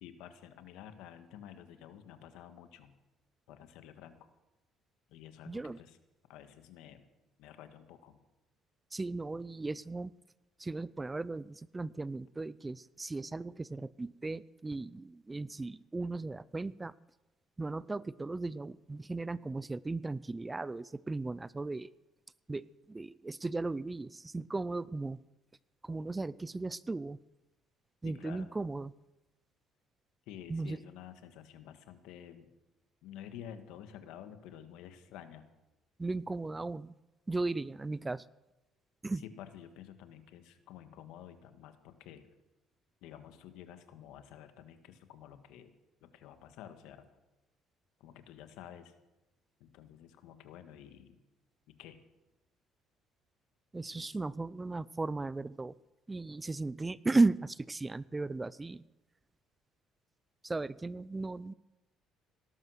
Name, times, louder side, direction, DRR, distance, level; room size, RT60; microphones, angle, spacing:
voice 1, 0.0-2.9 3.5-4.3 5.1-6.0 6.3-7.1 7.4-8.2 28.0-28.5 30.3-32.5 33.0-35.5 39.2-42.3 43.0-45.7 46.0-47.1 48.0-48.9 49.6-51.2 51.7-52.0 53.9-54.1, left 10 dB, 85° left, 9 dB, 1.6 m, -51 dB
voice 2, 5.5-5.8 8.9-10.1 10.6-16.9 17.6-21.9 22.5-25.2 25.8-27.2 28.0-28.9 30.5-30.8 36.0-36.9 37.3-38.2 39.0-39.2 53.7-55.8 56.1-58.8 60.4-61.5, right 3 dB, 15° right, 20 dB, 0.4 m, -36 dB
18.0 x 12.0 x 6.4 m, 0.98 s
cardioid pair, 115°, 0 cm